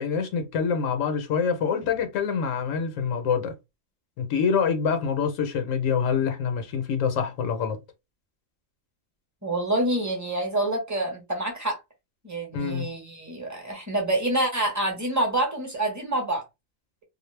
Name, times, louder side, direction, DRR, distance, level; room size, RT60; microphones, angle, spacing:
voice 1, 0.0-3.5 4.2-7.8 12.5-12.9, left 6 dB, 75° left, 1.0 m, -26 dB
voice 2, 9.4-11.8 12.2-16.4, right 1 dB, 15° right, 0.7 m, -27 dB
2.4 x 2.0 x 3.1 m
omnidirectional pair, 1.4 m